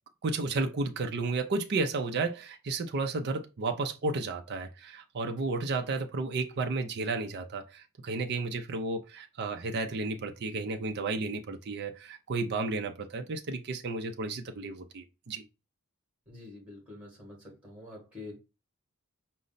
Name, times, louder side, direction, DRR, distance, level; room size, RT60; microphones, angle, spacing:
voice 1, 0.2-15.5, right 3 dB, 50° right, 0.5 m, -32 dB
voice 2, 16.3-18.4, left 2 dB, 5° right, 1.6 m, -46 dB
5.0 x 2.0 x 4.0 m
head